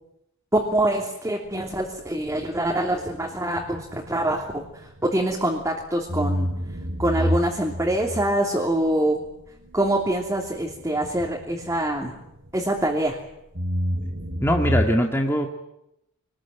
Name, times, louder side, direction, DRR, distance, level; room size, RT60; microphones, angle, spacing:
voice 1, 0.5-4.6 5.1-6.5 7.0-9.2 9.7-12.1 12.5-13.2, right 1 dB, 15° right, 0 dB, 3.1 m, -24 dB
sound 1, 1.4-5.7 6.1-13.1 13.5-14.9, equal, 55° right, 3.2 m, -31 dB
voice 2, 14.4-15.5, equal, 10° left, 2 dB, 1.9 m, -21 dB
26.0 x 21.0 x 9.2 m, 0.84 s
head